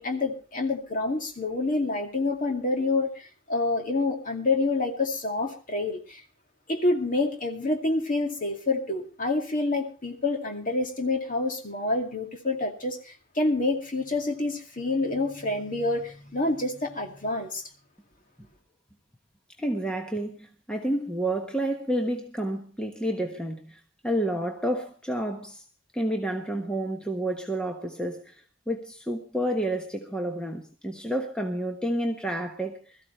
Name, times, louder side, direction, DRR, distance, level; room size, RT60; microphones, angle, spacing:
voice 1, 0.0-6.2 6.7-17.6, left 2 dB, 40° left, 2.3 m, -27 dB
voice 2, 19.6-25.6 25.9-33.0, right 1 dB, 5° left, 1.2 m, -30 dB
22.0 x 14.0 x 3.2 m
head